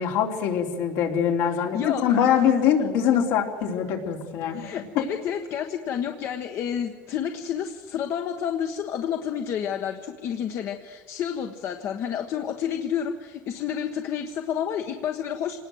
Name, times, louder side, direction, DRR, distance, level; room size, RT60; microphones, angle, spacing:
voice 1, 0.0-4.7 5.0-5.1, left 8 dB, 75° left, 2 dB, 3.6 m, -23 dB
voice 2, 1.5-2.4 4.5-15.6, left 8 dB, 55° left, 6 dB, 1.3 m, -30 dB
25.5 x 19.0 x 8.0 m, 1.5 s
supercardioid pair, 120°, 6 cm